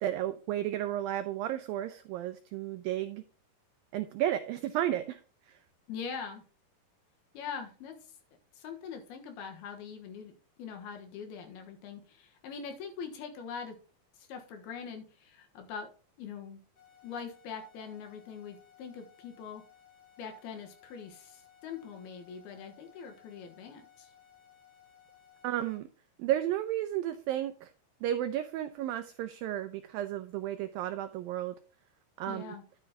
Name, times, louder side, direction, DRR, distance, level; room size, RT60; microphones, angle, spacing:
voice 1, 0.0-3.2 3.9-5.2 5.5-5.6 25.4-25.9 26.2-27.7 28.0-31.5 32.2-32.5, right 12 dB, 85° right, 10 dB, 2.0 m, -33 dB
voice 2, 5.9-6.4 7.3-8.0 8.5-10.3 10.6-13.8 14.2-15.9 16.2-16.6 17.0-19.6 20.2-24.1 32.3-32.6, left 6 dB, 75° left, 5 dB, 3.1 m, -43 dB
sound 1, 16.8-25.8, left 9 dB, 45° left, 6.3 m, -60 dB
11.0 x 7.9 x 2.9 m, 0.38 s
omnidirectional pair, 4.8 m